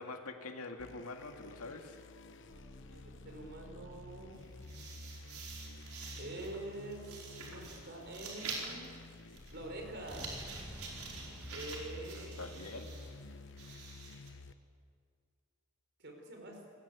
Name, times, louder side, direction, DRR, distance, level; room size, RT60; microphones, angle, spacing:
voice 1, 0.0-2.1 12.0-12.9, left 3 dB, 90° left, 4 dB, 2.1 m, -45 dB
sound 1, 0.8-14.5, left 2 dB, 55° left, 1.0 m, -51 dB
voice 2, 2.3-4.4 6.2-9.0 9.5-10.3 11.5-12.4 16.0-16.6, right 2 dB, 50° right, 3 dB, 5.0 m, -46 dB
sound 2, 4.3-14.3, right 4 dB, 90° right, 5.1 m, -47 dB
sound 3, 10.0-13.1, equal, 5° right, 1.8 m, -52 dB
26.0 x 20.0 x 8.3 m, 2.2 s
head